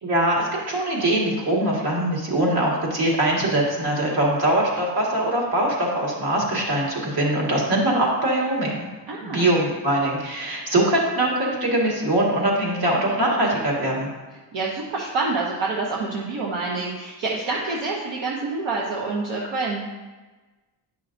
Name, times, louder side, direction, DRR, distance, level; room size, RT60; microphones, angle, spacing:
voice 1, 0.0-8.9 9.2-14.1, right 1 dB, 55° right, -3 dB, 1.9 m, -22 dB
voice 2, 9.1-9.5 14.5-19.8, right 3 dB, 75° right, -3 dB, 1.0 m, -27 dB
9.8 x 5.6 x 2.6 m, 1.2 s
wide cardioid pair, 160°, 45 cm